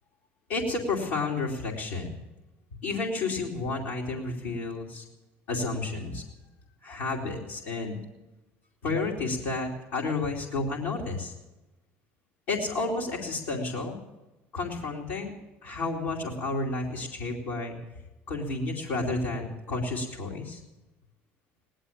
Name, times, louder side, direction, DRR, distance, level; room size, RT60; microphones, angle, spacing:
voice 1, 0.5-2.2 2.8-5.0 5.5-6.2 6.8-8.0 8.8-11.3 12.5-14.0 14.5-15.3 15.8-17.8 18.3-20.6, left 3 dB, 80° left, -4 dB, 2.8 m, -31 dB
17.5 x 11.5 x 7.2 m, 1.1 s
hypercardioid pair, 75°, 6 cm